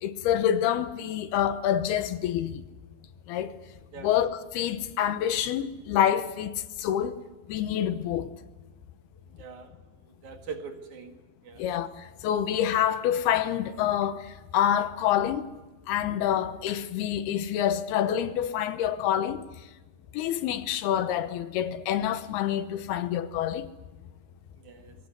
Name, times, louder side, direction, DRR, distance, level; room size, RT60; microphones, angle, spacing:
voice 1, 0.0-2.6 3.3-3.6 4.0-7.1 7.5-8.3 11.6-15.5 15.9-19.4 20.1-23.7, left 10 dB, 80° left, 2.9 m, -27 dB
voice 2, 9.4-9.7 10.2-11.2 11.4-11.6 24.6-24.9, right 5 dB, 55° right, 2.8 m, -41 dB
21.5 x 17.5 x 9.5 m
omnidirectional pair, 4.6 m